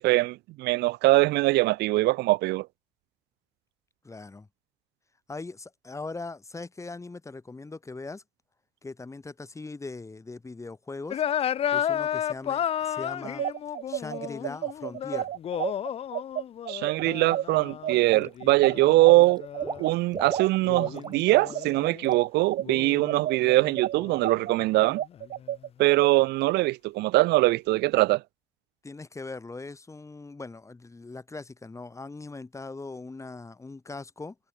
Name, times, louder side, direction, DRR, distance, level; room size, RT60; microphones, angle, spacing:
voice 1, 0.0-2.7 16.7-19.4 19.8-25.0 25.8-28.2, right 19 dB, 80° right, 0.7 m, -22 dB
voice 2, 4.0-4.5 5.3-8.2 8.8-11.2 11.7-13.4 13.9-15.3 28.8-34.3, left 3 dB, 15° left, 3.1 m, -40 dB
sound 1, 11.1-19.9 20.6-22.2 22.6-25.5, left 10 dB, 35° left, 0.4 m, -33 dB
sound 2, 13.2-22.6 23.0-26.1, right 12 dB, 60° right, 1.8 m, -31 dB
Water / Liquid, 17.0-17.3 17.7-18.4 18.7-21.2 21.5-21.7 22.0-22.1, right 4 dB, 25° right, 3.4 m, -40 dB
cardioid pair, 110°, 17 cm